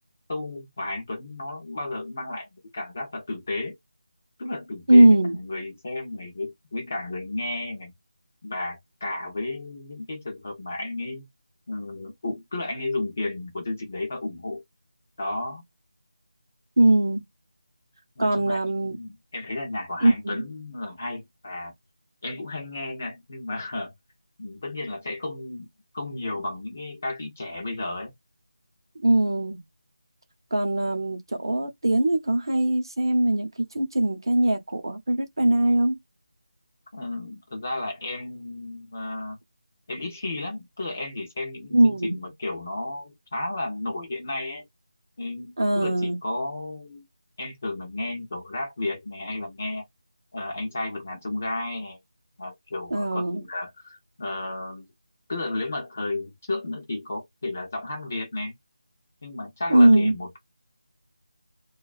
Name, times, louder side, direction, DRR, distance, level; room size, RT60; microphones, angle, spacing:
voice 1, 0.3-2.5 2.7-3.8 4.4-7.9 8.4-11.3 11.7-14.6 15.2-15.6 18.2-18.6 18.8-21.7 22.2-23.9 24.4-25.7 25.9-28.1 36.9-39.4 39.9-44.6 45.2-47.0 47.4-49.9 50.3-52.0 52.4-54.9 55.3-58.5 59.2-60.4, left 2 dB, 20° left, 0.5 m, -33 dB
voice 2, 4.9-5.4 16.8-17.2 18.2-19.0 20.0-20.4 29.0-29.6 30.5-33.5 33.7-36.0 41.7-42.2 45.6-46.2 52.9-53.4 59.7-60.1, right 1 dB, 40° right, 0.7 m, -20 dB
2.4 x 2.2 x 2.3 m
figure-of-eight pair, 180°, 3 cm